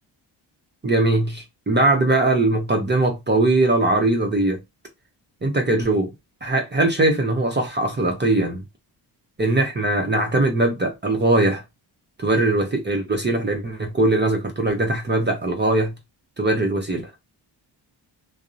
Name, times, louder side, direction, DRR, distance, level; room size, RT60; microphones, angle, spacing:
voice 1, 0.8-4.6 5.4-6.1 6.4-8.6 9.4-11.6 12.2-15.9 16.4-17.1, right 2 dB, 20° right, 0.6 m, -20 dB
2.6 x 2.0 x 2.5 m
cardioid pair, 75°, 48 cm